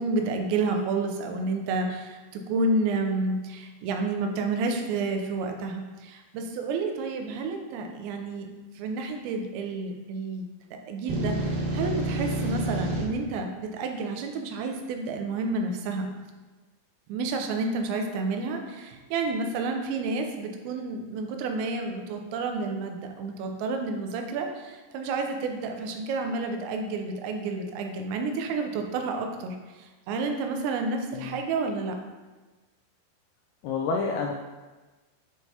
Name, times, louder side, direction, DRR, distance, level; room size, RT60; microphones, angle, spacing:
voice 1, 0.0-8.5 8.8-10.5 10.9-16.1 17.1-29.6 30.1-31.9, right 3 dB, 85° right, 4 dB, 3.0 m, -30 dB
sound 1, 11.1-13.0, right 1 dB, 65° right, 2.7 m, -28 dB
voice 2, 33.6-34.3, left 4 dB, 90° left, 2 dB, 2.2 m, -28 dB
8.1 x 4.6 x 2.8 m, 1.2 s
omnidirectional pair, 5.1 m